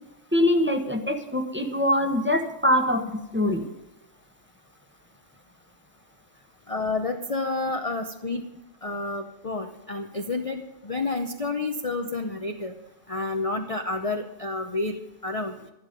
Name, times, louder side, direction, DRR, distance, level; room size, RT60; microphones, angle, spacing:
voice 1, 0.3-3.7, left 1 dB, 10° right, 3 dB, 1.3 m, -23 dB
voice 2, 6.7-8.4 8.8-12.7 13.1-15.6, left 3 dB, 30° left, 4 dB, 0.8 m, -30 dB
12.5 x 11.5 x 5.3 m, 0.96 s
omnidirectional pair, 1.4 m